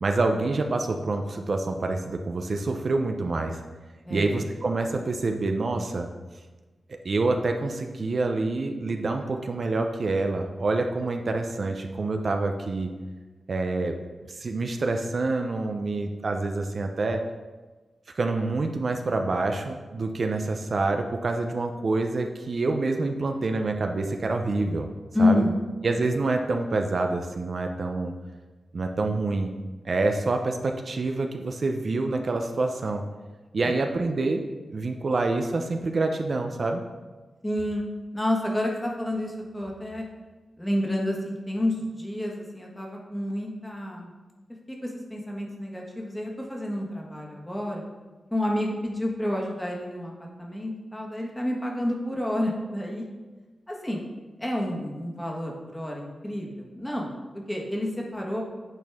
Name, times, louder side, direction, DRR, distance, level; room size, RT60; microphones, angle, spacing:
voice 1, 0.0-3.6 4.1-6.1 6.9-12.9 13.5-13.9 14.3-17.2 18.2-24.9 25.2-25.4 25.8-28.1 28.7-29.5 29.8-33.0 33.5-34.4 34.7-36.8, right 3 dB, 55° right, 4 dB, 0.5 m, -27 dB
voice 2, 4.0-4.4 25.1-25.7 33.6-33.7 37.4-37.8 38.1-40.0 40.6-44.1 44.7-47.8 48.3-53.0 53.7-54.0 54.4-58.4, left 1 dB, 10° left, -1 dB, 1.4 m, -29 dB
8.9 x 4.2 x 3.5 m, 1.3 s
cardioid pair, 80°, 0 cm